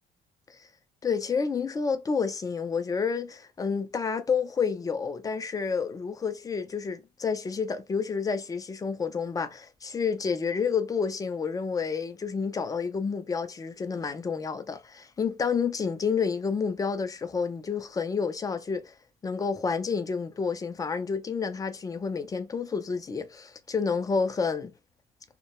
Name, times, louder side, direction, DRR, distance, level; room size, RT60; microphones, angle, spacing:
voice 1, 1.0-18.9 19.2-24.7, left 5 dB, 20° left, 0.3 m, -29 dB
2.2 x 2.1 x 2.8 m
cardioid pair, 110°, 17 cm